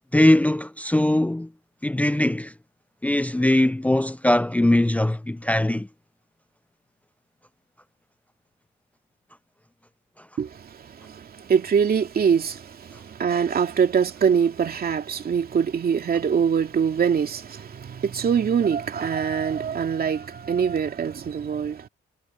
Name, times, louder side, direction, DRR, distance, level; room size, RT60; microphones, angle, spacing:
voice 1, 0.1-1.5 1.8-2.5 3.0-5.9, left 1 dB, 5° left, 0.7 m, -21 dB
voice 2, 10.4-21.9, right 7 dB, 50° right, 2.5 m, -24 dB
cardioid pair, 90°, 20 cm